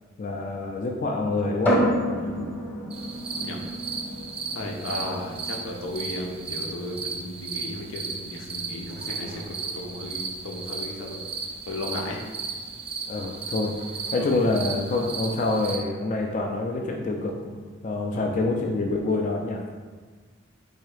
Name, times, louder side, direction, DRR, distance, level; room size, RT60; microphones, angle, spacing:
voice 1, 0.2-1.8 13.1-13.8 14.1-19.6, left 2 dB, 40° left, 1 dB, 0.4 m, -26 dB
sound 1, 1.6-15.1, equal, 10° left, 0.8 m, -33 dB
sound 2, 2.9-15.8, right 4 dB, 30° right, 0.5 m, -35 dB
voice 2, 4.5-11.2 11.7-12.2 14.2-14.3 18.1-18.3, left 1 dB, 85° left, 0 dB, 0.7 m, -35 dB
4.0 x 2.8 x 4.7 m, 1.5 s
head